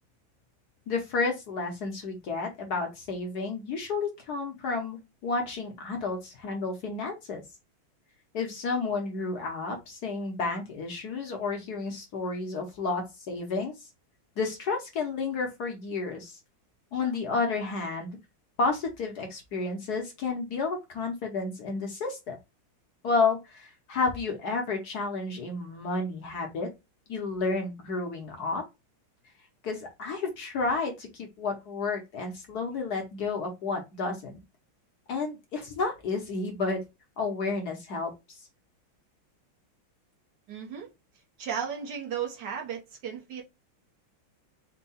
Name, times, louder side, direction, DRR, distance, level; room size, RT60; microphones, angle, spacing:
voice 1, 0.9-7.4 8.3-13.7 14.4-16.4 16.9-18.2 18.6-22.4 23.0-26.7 27.1-28.6 29.6-34.4 35.1-36.8 37.2-38.4, left 4 dB, 60° left, 1.2 m, -31 dB
voice 2, 40.5-40.9 41.4-43.4, right 8 dB, 60° right, 1.4 m, -35 dB
4.5 x 2.2 x 4.1 m
omnidirectional pair, 2.3 m